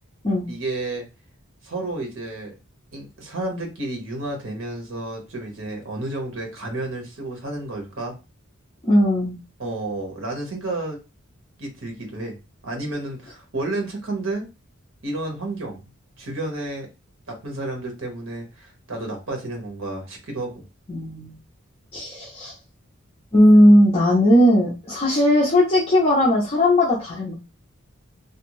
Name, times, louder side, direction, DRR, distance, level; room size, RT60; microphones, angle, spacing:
voice 1, 0.5-1.0 1.6-2.5 2.9-8.2 9.6-11.0 11.6-12.4 12.6-14.5 15.0-15.8 16.2-16.9 17.3-20.6, right 2 dB, 70° right, 2 dB, 1.1 m, -31 dB
voice 2, 8.8-9.3 20.9-21.4 21.9-22.5 23.3-27.3, left 1 dB, 30° left, -4 dB, 0.6 m, -17 dB
2.6 x 2.3 x 3.0 m, 0.29 s
head